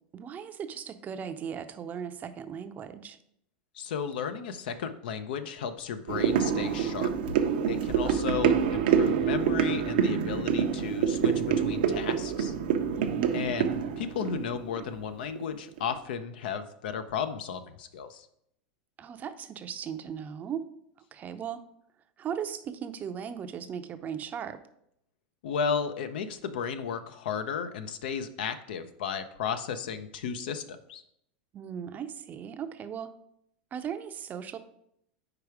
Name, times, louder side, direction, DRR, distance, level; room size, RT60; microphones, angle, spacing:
voice 1, 0.1-3.2 8.0-8.2 12.9-13.5 19.0-20.6 21.1-21.6 22.2-24.6 31.5-33.1 33.7-34.6, right 8 dB, 35° right, 10 dB, 0.5 m, -37 dB
voice 2, 3.7-7.1 7.7-12.5 13.3-18.3 25.4-31.0, left 7 dB, 80° left, 10 dB, 0.6 m, -34 dB
sound 1, 6.1-15.4 15.8-15.9, right 8 dB, 75° right, 0.6 m, -27 dB
4.9 x 4.6 x 4.8 m, 0.74 s
hypercardioid pair, 105°, 5 cm